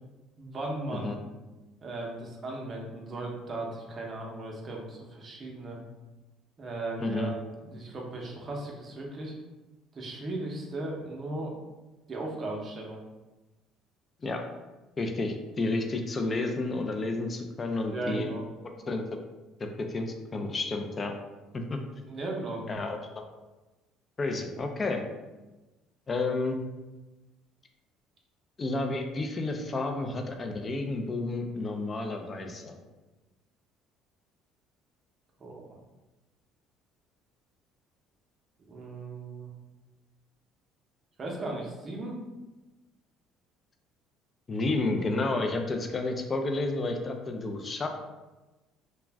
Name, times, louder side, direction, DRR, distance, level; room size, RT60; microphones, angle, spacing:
voice 1, 0.4-1.1 1.8-5.8 6.6-7.4 7.6-9.3 9.9-11.6 12.1-13.0 17.6-18.4 22.1-22.6 35.4-35.8 38.7-39.5 41.2-42.2, right 2 dB, 35° right, -1 dB, 0.6 m, -37 dB
voice 2, 7.0-7.3 14.2-14.4 15.0-18.3 18.6-19.0 19.6-21.1 21.5-21.8 22.7-23.0 24.2-25.0 26.1-26.6 28.6-32.8 44.5-47.9, left 2 dB, 25° left, 4 dB, 0.3 m, -31 dB
2.4 x 2.1 x 3.3 m, 1.1 s
cardioid pair, 125°, 0 cm